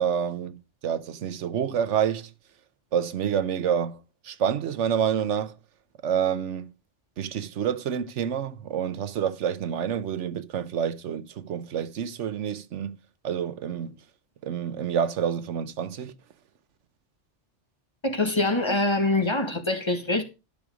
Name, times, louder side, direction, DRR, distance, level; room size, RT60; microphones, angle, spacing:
voice 1, 0.0-2.3 2.9-4.0 4.2-5.6 6.0-6.7 7.2-12.9 13.2-13.9 14.4-16.1, right 8 dB, 90° right, 1.1 m, -28 dB
voice 2, 18.0-20.2, left 2 dB, 25° left, 1.5 m, -24 dB
12.0 x 6.2 x 5.0 m
omnidirectional pair, 1.2 m